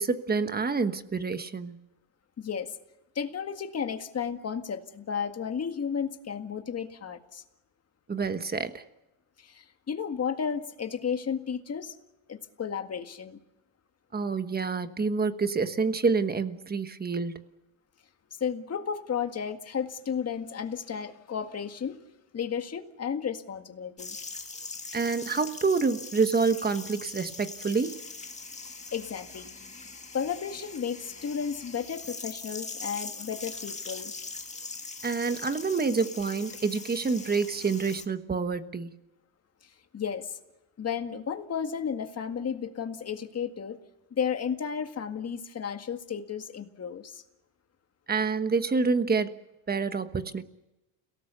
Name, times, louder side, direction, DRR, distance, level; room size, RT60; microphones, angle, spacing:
voice 1, 0.0-1.8 8.1-8.8 14.1-17.5 24.9-28.0 35.0-38.9 48.1-49.4 49.7-50.4, right 4 dB, 20° right, 10 dB, 1.3 m, -27 dB
voice 2, 2.4-2.8 3.2-7.4 9.4-12.0 12.3-13.4 18.4-22.0 22.3-24.2 28.9-29.5 30.1-34.1 39.9-40.4 40.8-43.8 44.1-47.2, left 7 dB, 30° left, 6 dB, 1.9 m, -33 dB
sound 1, 24.0-38.0, left 3 dB, 15° left, 1.8 m, -42 dB
29.5 x 18.0 x 6.9 m, 0.96 s
cardioid pair, 125°, 48 cm